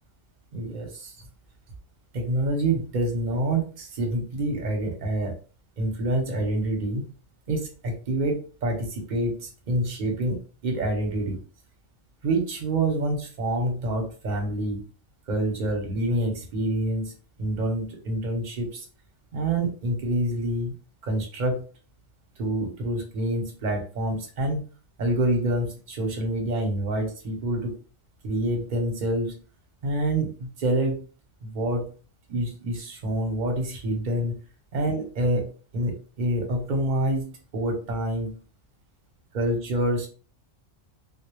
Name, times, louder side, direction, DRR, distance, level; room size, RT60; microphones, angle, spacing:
voice 1, 0.5-1.1 2.1-5.3 5.8-7.0 7.5-11.4 12.2-14.8 15.3-17.1 17.4-18.8 19.3-20.7 21.0-21.6 22.4-24.6 25.0-27.8 28.2-29.4 29.8-31.0 31.4-31.9 32.3-34.3 34.7-38.4 39.3-40.1, right 1 dB, 45° right, 2 dB, 0.7 m, -27 dB
2.1 x 2.0 x 3.0 m, 0.37 s
omnidirectional pair, 1.3 m